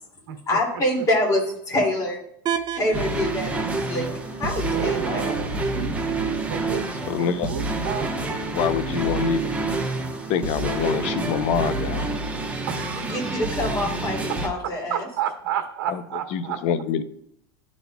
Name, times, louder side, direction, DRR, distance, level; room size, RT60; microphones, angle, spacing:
voice 1, 0.5-2.2 2.7-4.1 4.4-5.3 13.0-15.1, left 1 dB, 25° left, -1 dB, 2.5 m, -25 dB
sound 1, 2.5-8.5, right 8 dB, 35° right, 0.6 m, -37 dB
sound 2, 2.9-14.5, right 3 dB, 10° right, 1.0 m, -28 dB
voice 2, 4.7-6.9 7.2-8.3 12.7-13.4 14.6-16.6, right 9 dB, 75° right, 4 dB, 1.3 m, -31 dB
voice 3, 7.0-7.6 8.5-9.5 10.3-12.2 15.9-16.0 16.3-17.0, left 8 dB, 55° left, 12 dB, 0.6 m, -25 dB
12.0 x 4.2 x 2.3 m, 0.73 s
supercardioid pair, 125°, 13 cm